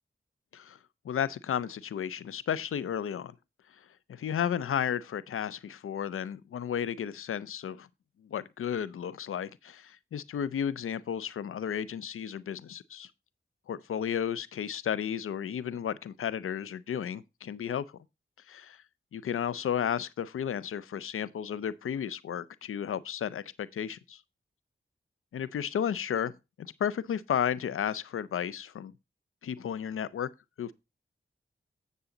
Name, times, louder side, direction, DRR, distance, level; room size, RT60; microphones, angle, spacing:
voice 1, 1.1-3.3 4.1-7.9 8.3-13.1 13.7-17.8 18.5-18.8 19.1-24.2 25.3-26.3 26.6-28.9 29.4-30.3 30.6-30.7, left 8 dB, 85° left, 0.5 m, -33 dB
8.3 x 6.8 x 3.8 m
cardioid pair, 45°, 21 cm